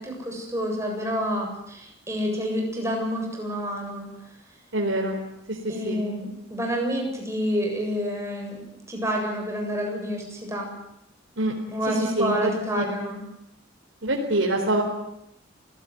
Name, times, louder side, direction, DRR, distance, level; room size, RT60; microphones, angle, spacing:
voice 1, 0.0-4.1 5.7-8.6 8.9-10.7 11.7-13.2, equal, 15° right, 0 dB, 7.7 m, -28 dB
voice 2, 4.7-5.1 5.5-6.0 11.4-11.5 12.0-12.5 12.8-12.9 14.0-14.8, right 1 dB, 65° right, 0 dB, 4.2 m, -25 dB
27.5 x 17.0 x 9.4 m, 0.81 s
head